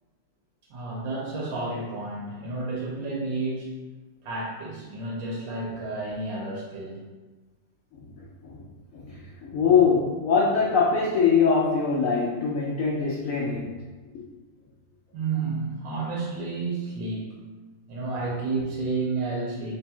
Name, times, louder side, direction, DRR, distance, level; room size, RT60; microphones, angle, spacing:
voice 1, 0.7-3.7 4.2-7.0 15.1-17.3 17.9-19.7, right 3 dB, 80° right, -4 dB, 1.4 m, -31 dB
voice 2, 8.9-13.7 14.1-14.2, left 5 dB, 90° left, -4 dB, 0.7 m, -23 dB
3.2 x 2.3 x 4.2 m, 1.3 s
omnidirectional pair, 2.0 m